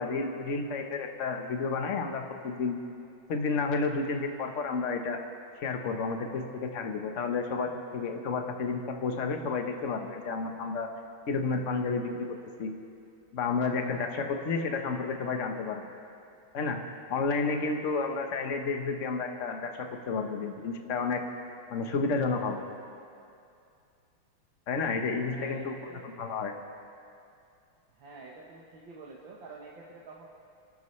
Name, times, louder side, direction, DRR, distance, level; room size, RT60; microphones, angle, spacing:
voice 1, 0.0-2.8 3.3-5.2 5.6-10.9 11.3-12.7 13.3-15.8 16.5-16.8 17.1-21.2 21.7-22.6 24.7-26.5, left 4 dB, 45° left, 4 dB, 1.2 m, -31 dB
voice 2, 25.3-26.1 27.9-30.3, right 3 dB, 65° right, -3 dB, 1.9 m, -48 dB
30.0 x 12.5 x 3.2 m, 2.5 s
omnidirectional pair, 2.4 m